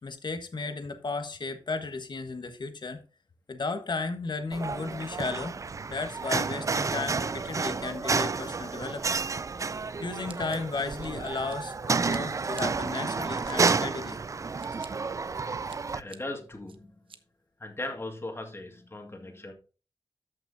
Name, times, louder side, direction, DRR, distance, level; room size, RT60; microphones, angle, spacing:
voice 1, 0.0-3.0 3.5-5.6 5.9-9.2 10.0-14.2, left 3 dB, 50° left, 8 dB, 1.2 m, -34 dB
sound 1, 4.5-16.0, right 4 dB, 35° right, 0.3 m, -30 dB
Scissors, 10.3-11.8 12.1-12.6 13.1-13.7 14.3-14.9 15.3-16.2 16.7-17.2, right 5 dB, 65° right, 0.8 m, -48 dB
voice 2, 15.9-16.9 17.6-19.5, left 2 dB, 25° left, 3 dB, 1.9 m, -38 dB
13.5 x 6.0 x 2.7 m, 0.35 s
wide cardioid pair, 100°, 9 cm